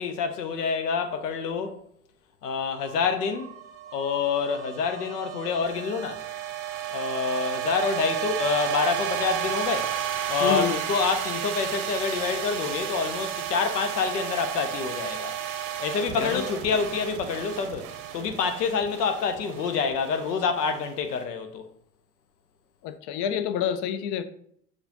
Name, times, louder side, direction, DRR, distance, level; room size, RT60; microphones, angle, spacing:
voice 1, 0.0-1.8 2.4-3.5 3.9-6.2 6.9-9.9 10.3-15.3 15.8-17.9 18.1-21.6, left 5 dB, 85° left, 0.6 m, -27 dB
sound 1, 2.8-21.1, right 10 dB, 55° right, 0.7 m, -33 dB
voice 2, 10.4-10.8 16.2-16.4 22.8-24.2, left 9 dB, 40° left, 0.4 m, -28 dB
6.6 x 2.3 x 2.8 m
figure-of-eight pair, 70°, 47 cm